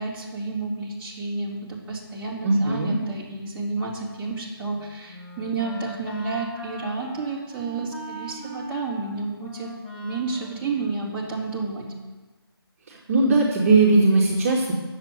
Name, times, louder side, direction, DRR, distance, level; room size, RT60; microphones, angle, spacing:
voice 1, 0.0-11.9, right 3 dB, 10° right, -7 dB, 2.4 m, -31 dB
voice 2, 2.4-3.0 12.9-14.7, right 3 dB, 35° right, -1 dB, 1.8 m, -19 dB
Wind instrument woodwind instrument, 4.6-11.7, equal, 10° left, 1.1 m, -40 dB
10.5 x 7.6 x 9.1 m, 1.3 s
figure-of-eight pair, 165°, 13 cm